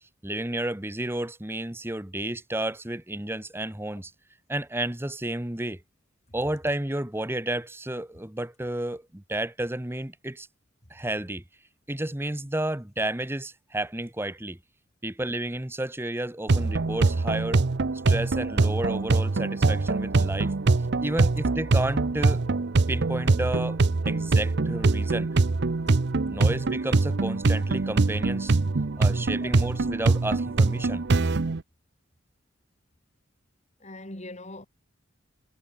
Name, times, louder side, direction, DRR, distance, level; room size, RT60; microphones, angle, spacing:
voice 1, 0.2-4.1 4.5-5.8 6.3-10.5 10.9-11.4 11.9-14.6 15.0-17.6 18.1-20.5 21.0-22.5 22.9-25.3 26.3-28.6 29.0-31.0, right 1 dB, 10° right, 1.1 m, -31 dB
sound 1, 16.5-31.6, right 3 dB, 55° right, 0.7 m, -23 dB
voice 2, 25.8-26.4 29.4-29.5 33.8-34.7, left 1 dB, 35° left, 4.2 m, -42 dB
head